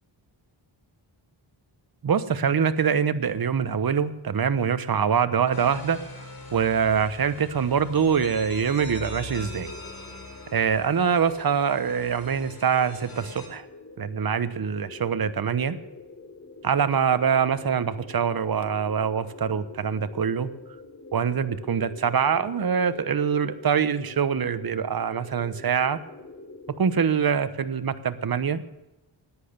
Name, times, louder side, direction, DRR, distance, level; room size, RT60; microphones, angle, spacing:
voice 1, 2.0-6.2 6.5-9.7 10.5-13.6 14.0-15.8 16.6-20.5 21.1-26.0 26.8-28.6, right 7 dB, 45° right, 13 dB, 1.1 m, -24 dB
sound 1, 5.5-13.5, left 3 dB, 45° left, 4.1 m, -42 dB
sound 2, 8.2-27.2, left 2 dB, 30° left, 1.8 m, -45 dB
14.0 x 10.0 x 6.8 m, 0.98 s
wide cardioid pair, 80°, 48 cm